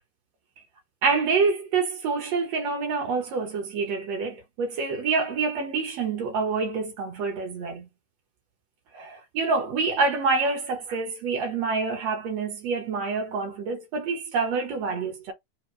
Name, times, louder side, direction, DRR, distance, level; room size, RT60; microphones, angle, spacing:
voice 1, 1.0-7.9 8.9-15.3, right 4 dB, 65° right, 1.8 m, -27 dB
5.3 x 2.1 x 3.1 m
omnidirectional pair, 3.9 m